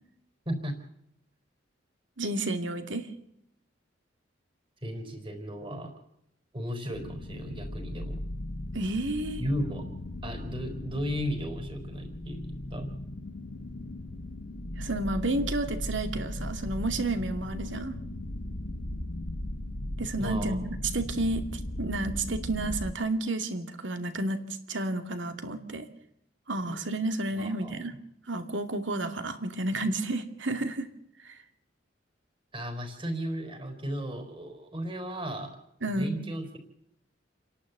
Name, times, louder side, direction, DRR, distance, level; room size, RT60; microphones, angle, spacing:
voice 1, 0.5-0.8 4.8-5.9 6.5-8.2 9.4-9.9 10.2-12.9 20.2-20.6 26.6-26.8 27.3-28.0 32.5-35.5 36.0-36.6, equal, 30° right, 4 dB, 4.2 m, -35 dB
voice 2, 2.2-3.1 8.7-9.4 14.8-18.0 20.0-25.9 26.5-27.9 28.3-30.9 31.2-31.3 35.8-36.2, right 2 dB, 80° right, 7 dB, 2.5 m, -31 dB
sound 1, 6.9-22.9, left 1 dB, 75° left, 1.7 m, -37 dB
29.0 x 11.5 x 8.1 m, 0.77 s
head